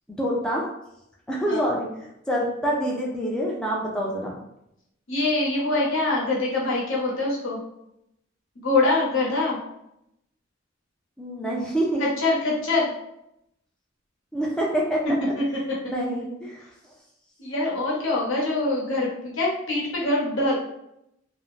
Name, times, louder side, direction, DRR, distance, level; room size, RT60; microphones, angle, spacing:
voice 1, 0.1-0.7 1.3-1.9 2.3-4.4 11.2-12.0 14.3-15.1 15.8-16.6, right 1 dB, 5° left, -4 dB, 0.4 m, -26 dB
voice 2, 5.1-7.6 8.6-9.6 12.0-12.9 17.4-20.6, left 2 dB, 70° left, -4 dB, 0.9 m, -24 dB
2.5 x 2.0 x 3.0 m, 0.79 s
head